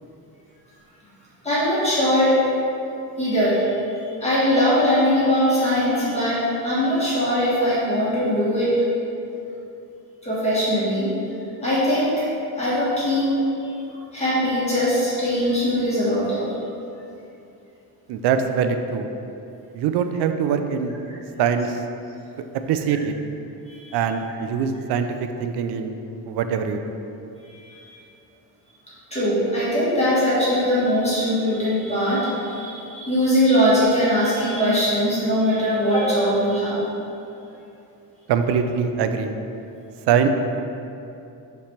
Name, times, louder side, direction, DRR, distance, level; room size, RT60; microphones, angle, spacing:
voice 1, 1.4-2.4 3.2-8.9 10.2-11.1 11.6-12.2 12.6-16.5 23.7-23.9 27.5-28.0 29.1-36.8, equal, 15° left, -9 dB, 1.4 m, -21 dB
voice 2, 18.1-19.1 19.7-21.0 21.4-21.8 22.7-23.1 23.9-25.1 25.4-25.9 26.3-26.9 38.3-39.3 40.1-40.3, right 7 dB, 70° right, 8 dB, 0.5 m, -22 dB
5.8 x 3.4 x 5.8 m, 2.8 s
cardioid pair, 175°, 41 cm